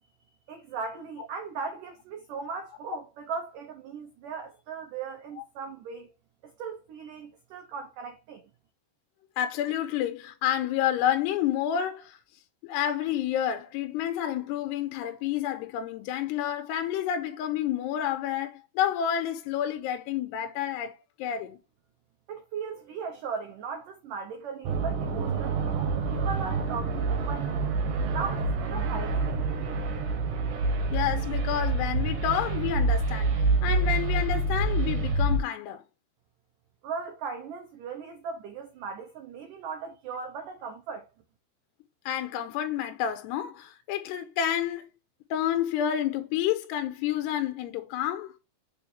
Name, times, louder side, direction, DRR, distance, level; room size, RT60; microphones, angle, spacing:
voice 1, 0.5-6.1 6.4-8.5 22.3-27.6 28.1-29.5 36.8-41.1, right 5 dB, 80° right, 1.9 m, -38 dB
voice 2, 9.4-12.2 12.6-20.9 21.2-21.6 30.9-33.4 33.6-35.8 42.1-44.9 45.3-48.3, left 10 dB, 80° left, 2.7 m, -29 dB
sound 1, 24.6-35.4, right 3 dB, 65° right, 2.2 m, -27 dB
7.1 x 3.3 x 4.3 m
omnidirectional pair, 5.1 m